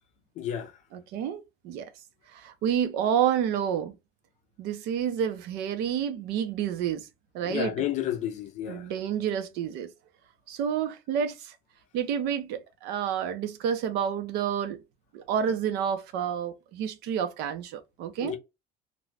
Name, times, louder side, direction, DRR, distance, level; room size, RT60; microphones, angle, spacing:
voice 1, 0.4-0.7 7.4-8.8 18.2-18.4, left 11 dB, 40° left, 0.4 m, -31 dB
voice 2, 0.9-1.9 2.3-4.0 4.6-7.1 7.3-7.7 8.7-9.9 10.5-11.5 11.9-14.8 15.1-18.3, right 8 dB, 60° right, 0.6 m, -29 dB
2.5 x 2.1 x 3.2 m
cardioid pair, 175°, 19 cm